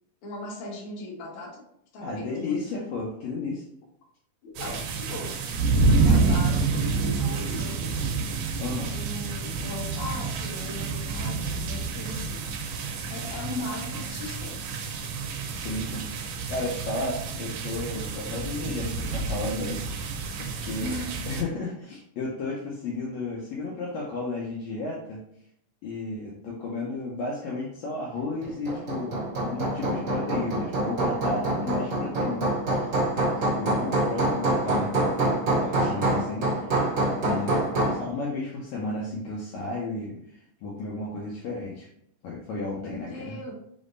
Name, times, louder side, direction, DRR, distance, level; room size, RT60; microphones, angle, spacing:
voice 1, 0.2-1.6 1.9-2.6 4.4-5.3 6.0-8.0 8.6-12.4 13.1-14.6 20.8-21.2 37.2-37.6 42.8-43.5, left 2 dB, 55° left, -3 dB, 1.7 m, -38 dB
voice 2, 2.0-3.6 8.6-9.0 15.4-20.1 20.4-21.0 21.3-25.2 25.8-32.9 33.4-36.9 37.2-37.6 37.9-41.9 42.2-43.4, left 2 dB, 75° left, -3 dB, 1.8 m, -33 dB
sound 1, 4.6-21.4, right 4 dB, 85° right, 2.2 m, -28 dB
Hammer, 28.4-38.1, right 1 dB, 45° right, 1.0 m, -26 dB
5.0 x 3.5 x 2.5 m, 0.71 s
omnidirectional pair, 3.7 m